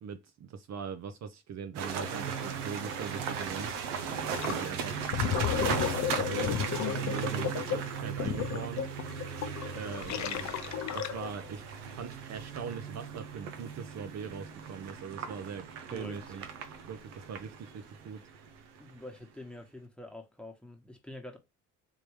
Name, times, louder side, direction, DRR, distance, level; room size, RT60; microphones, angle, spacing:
voice 1, 0.0-3.7 4.4-5.0 5.4-5.8 6.1-8.8 9.7-10.5 10.9-11.7 11.9-16.4 16.9-18.2, right 6 dB, 50° right, 0.6 m, -41 dB
sound 1, 1.7-18.9, right 7 dB, 85° right, 0.6 m, -37 dB
Gurgling, 4.4-4.6 5.0-11.5, left 10 dB, 50° left, 0.6 m, -33 dB
voice 2, 15.9-16.4 18.8-21.4, left 1 dB, 5° left, 1.2 m, -46 dB
3.6 x 2.9 x 3.2 m
hypercardioid pair, 55°, 35 cm